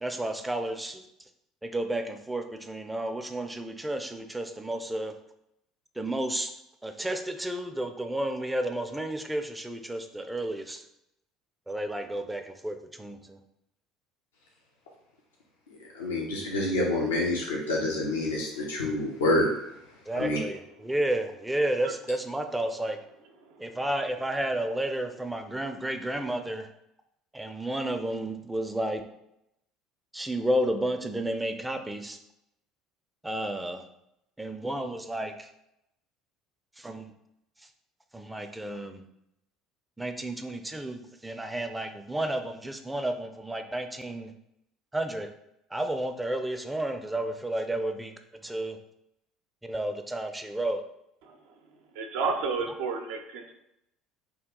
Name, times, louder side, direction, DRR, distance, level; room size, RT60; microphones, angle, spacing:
voice 1, 0.0-1.0 1.6-5.1 6.0-6.5 6.8-10.8 11.7-13.4 20.1-23.0 23.6-26.7 27.3-29.0 30.1-32.2 33.2-33.8 34.4-35.5 36.8-37.1 38.1-39.0 40.0-44.3 44.9-45.3 45.7-48.1 48.4-48.8 49.7-50.8, right 1 dB, 10° right, 6 dB, 0.4 m, -31 dB
voice 2, 15.9-19.5 20.1-20.4, left 1 dB, 80° left, -3 dB, 0.6 m, -27 dB
voice 3, 52.0-53.5, right 4 dB, 70° right, 3 dB, 0.5 m, -31 dB
2.9 x 2.3 x 3.6 m, 0.82 s
hypercardioid pair, 65°, 0 cm